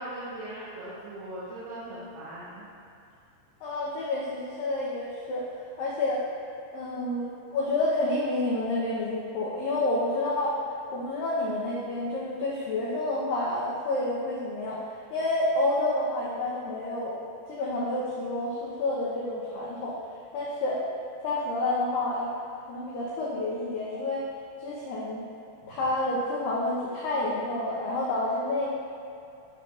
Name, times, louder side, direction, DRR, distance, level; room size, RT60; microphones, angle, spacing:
voice 1, 0.0-2.7 25.6-25.7, right 1 dB, 70° right, -10 dB, 2.7 m, -39 dB
voice 2, 3.6-5.5 5.8-6.2 6.7-10.6 10.9-14.8 15.1-17.2 17.5-19.9 20.3-20.8 21.2-22.3 22.7-24.2 24.6-25.2 25.7-28.7, left 2 dB, 85° left, -5 dB, 2.0 m, -29 dB
12.0 x 5.5 x 2.3 m, 2.6 s
omnidirectional pair, 5.0 m